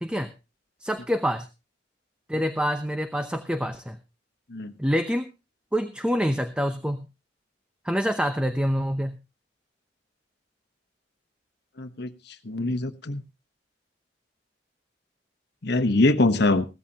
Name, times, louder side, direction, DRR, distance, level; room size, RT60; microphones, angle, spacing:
voice 1, 0.8-1.5 2.3-4.0 4.8-5.3 5.7-7.1 7.8-9.2, equal, 5° right, 8 dB, 0.7 m, -26 dB
voice 2, 11.8-12.1 12.4-13.2 15.6-16.7, left 2 dB, 65° left, 9 dB, 1.1 m, -23 dB
16.5 x 14.0 x 2.9 m, 0.28 s
head